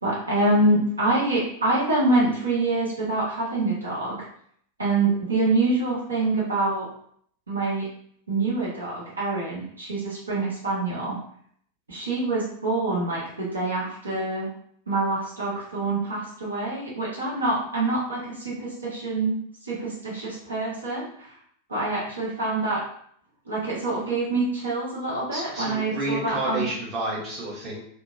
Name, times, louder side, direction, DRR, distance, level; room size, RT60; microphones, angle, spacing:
voice 1, 0.0-4.2 4.8-6.9 7.5-7.9 8.3-11.2 11.9-14.5 14.9-19.4 19.6-21.4 21.7-22.8 23.5-26.7, right 2 dB, 75° right, -6 dB, 0.9 m, -25 dB
voice 2, 25.3-27.8, right 2 dB, 30° right, -5 dB, 1.0 m, -30 dB
2.8 x 2.1 x 2.5 m, 0.65 s
figure-of-eight pair, 90°, 0 cm